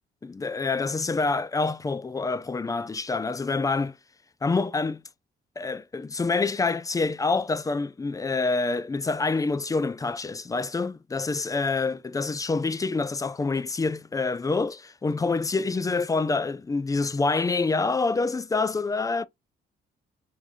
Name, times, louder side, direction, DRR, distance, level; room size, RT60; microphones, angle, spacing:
voice 1, 0.2-4.0 4.4-5.0 5.6-19.2, left 3 dB, 15° left, 0.4 m, -26 dB
3.5 x 2.6 x 3.4 m
cardioid pair, 90°, 20 cm